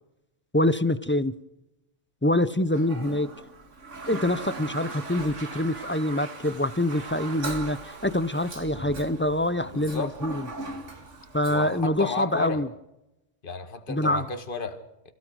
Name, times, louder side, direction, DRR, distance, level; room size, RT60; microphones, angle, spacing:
voice 1, 0.5-1.3 2.2-3.3 4.1-10.5 11.3-12.7 13.9-14.2, left 1 dB, 20° left, 0.3 m, -25 dB
Toilet flush, 2.7-11.8, right 3 dB, 60° right, 2.5 m, -39 dB
voice 2, 9.7-10.1 11.5-12.6 13.4-15.1, left 4 dB, 40° left, 1.9 m, -33 dB
29.0 x 16.0 x 6.4 m
omnidirectional pair, 1.4 m